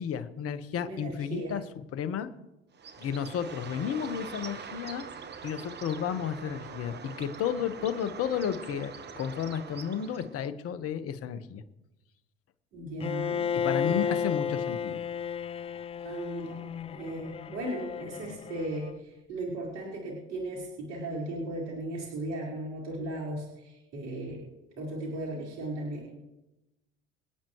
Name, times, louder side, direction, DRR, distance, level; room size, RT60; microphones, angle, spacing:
voice 1, 0.0-2.3 3.0-5.0 5.4-11.6 13.5-15.0, left 8 dB, 50° left, 11 dB, 1.3 m, -32 dB
voice 2, 0.8-1.6 12.7-13.5 13.8-14.2 16.0-16.7 16.9-24.5 24.8-26.1, right 1 dB, 60° right, -4 dB, 4.7 m, -36 dB
Bird, 2.7-10.5, right 6 dB, 35° right, 1.3 m, -43 dB
Bowed string instrument, 13.0-19.0, left 7 dB, 20° left, 0.3 m, -33 dB
26.5 x 9.1 x 3.2 m, 0.97 s
hypercardioid pair, 80°, 31 cm